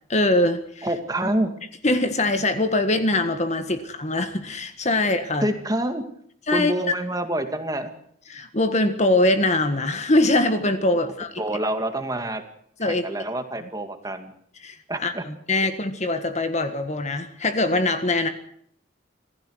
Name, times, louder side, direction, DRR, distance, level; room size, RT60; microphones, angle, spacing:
voice 1, 0.1-0.9 1.8-5.5 6.5-6.7 8.3-11.3 12.8-13.0 14.6-14.7 15.0-18.3, left 2 dB, 35° left, 9 dB, 1.6 m, -22 dB
voice 2, 0.8-1.5 5.4-6.0 6.5-7.9 11.4-12.4 12.8-14.3 14.9-15.2, right 1 dB, 20° right, 6 dB, 2.1 m, -27 dB
26.0 x 16.0 x 6.4 m, 0.65 s
head